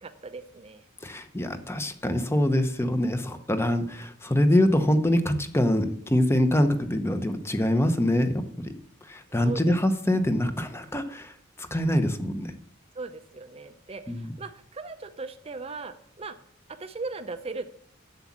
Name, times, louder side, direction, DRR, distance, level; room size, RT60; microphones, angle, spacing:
voice 1, 0.0-0.8 9.4-9.8 12.9-16.4 16.7-17.7, right 3 dB, 30° right, 8 dB, 0.6 m, -38 dB
voice 2, 1.0-8.7 9.1-12.5 14.1-14.3, left 1 dB, 15° left, 9 dB, 0.8 m, -24 dB
7.9 x 7.2 x 7.3 m, 0.66 s
head